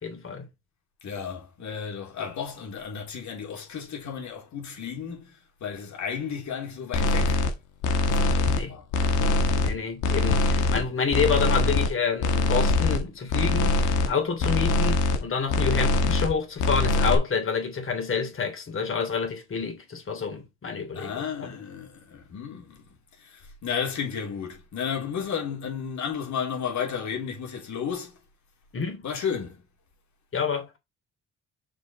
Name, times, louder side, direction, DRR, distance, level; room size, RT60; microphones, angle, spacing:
voice 1, 0.0-0.5 8.5-8.8 9.6-21.5 28.7-29.0 30.3-30.8, left 5 dB, 45° left, 3.3 m, -28 dB
voice 2, 1.0-7.4 8.1-8.9 10.5-10.8 20.9-22.9 23.2-28.2 29.0-29.6, left 7 dB, 70° left, 3.6 m, -33 dB
sound 1, 6.9-7.5 7.8-8.6 8.9-9.7 10.0-10.8 11.1-11.9 12.2-13.0 13.3-14.1 14.4-15.2 15.5-16.3 16.6-17.2, left 3 dB, 85° left, 1.8 m, -23 dB
6.1 x 5.3 x 4.4 m
cardioid pair, 90°, 30 cm